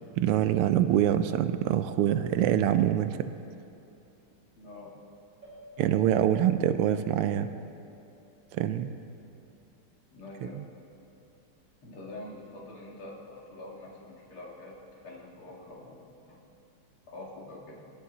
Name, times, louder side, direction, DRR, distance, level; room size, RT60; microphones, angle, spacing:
voice 1, 0.2-3.2 5.8-7.5 8.5-8.9 10.4-10.5, right 11 dB, 85° right, 11 dB, 1.5 m, -25 dB
voice 2, 4.6-4.9 10.1-10.6 11.8-14.8 15.0-16.4 17.1-17.9, left 2 dB, 75° left, -3 dB, 2.9 m, -45 dB
sound 1, 5.4-8.4, left 4 dB, 60° right, 4.9 m, -52 dB
20.5 x 10.5 x 4.0 m, 2.8 s
omnidirectional pair, 2.4 m